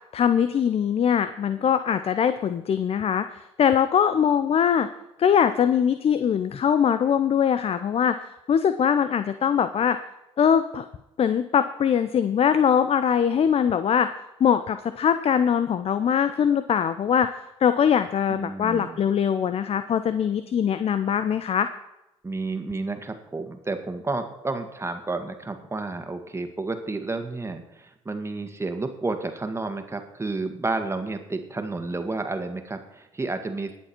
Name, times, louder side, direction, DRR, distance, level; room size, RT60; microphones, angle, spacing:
voice 1, 0.1-4.9 5.2-10.0 10.4-10.8 11.2-14.1 14.4-17.3 17.6-21.7, left 8 dB, 50° left, 12 dB, 0.6 m, -22 dB
voice 2, 18.3-19.0 22.2-33.8, right 3 dB, 20° right, 6 dB, 1.9 m, -31 dB
19.5 x 7.4 x 4.5 m, 0.91 s
hypercardioid pair, 60°, 13 cm